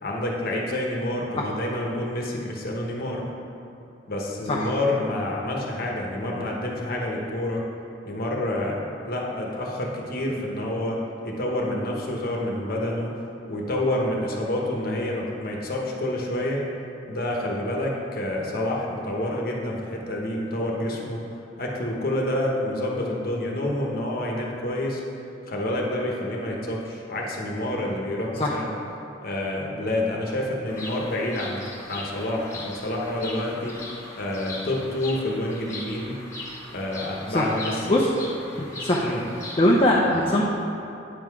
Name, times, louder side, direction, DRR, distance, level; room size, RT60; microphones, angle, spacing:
voice 1, 0.0-3.3 4.1-7.6 8.0-13.1 13.5-16.7 17.1-21.2 21.6-25.0 25.5-28.7 29.2-31.6 31.9-33.8 34.2-36.2 36.7-38.0 39.0-39.2, left 1 dB, 55° left, -1 dB, 1.1 m, -28 dB
Bird vocalization bird call bird song, 30.7-39.8, left 2 dB, 15° left, 1.1 m, -39 dB
voice 2, 38.6-39.1 39.6-40.4, left 1 dB, 30° left, -3 dB, 0.6 m, -21 dB
8.8 x 5.7 x 4.7 m, 2.8 s
head